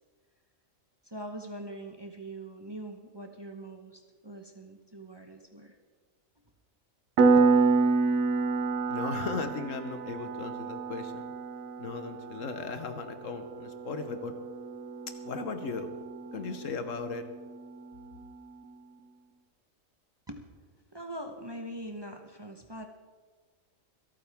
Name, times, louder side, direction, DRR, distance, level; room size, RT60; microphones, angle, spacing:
voice 1, 1.0-5.8 7.2-7.3 20.3-20.4 20.9-22.9, right 1 dB, 20° right, 4 dB, 1.0 m, -42 dB
Piano, 7.2-17.6, right 4 dB, 80° right, 1.2 m, -29 dB
voice 2, 8.9-11.3 11.8-14.3 15.2-15.9 16.3-17.2, left 4 dB, 70° left, 8 dB, 1.4 m, -37 dB
25.5 x 8.9 x 3.6 m, 1.4 s
omnidirectional pair, 1.4 m